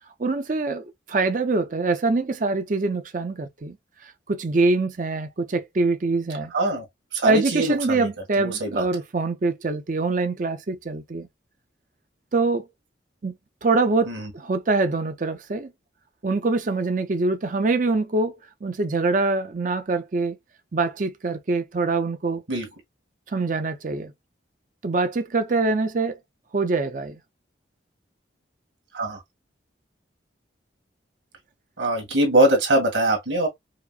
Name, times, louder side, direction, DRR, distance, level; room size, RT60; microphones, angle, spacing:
voice 1, 0.2-3.8 4.0-6.5 7.2-11.3 12.3-12.7 13.2-15.7 16.2-20.4 20.7-22.4 23.3-24.1 24.8-26.2 26.5-27.2, right 3 dB, 40° right, 0.5 m, -24 dB
voice 2, 6.5-6.8 7.1-8.0 8.4-8.8 14.1-14.2 22.5-22.7 28.9-29.2 31.8-33.5, right 1 dB, 75° right, 1.7 m, -22 dB
4.9 x 2.0 x 2.3 m
head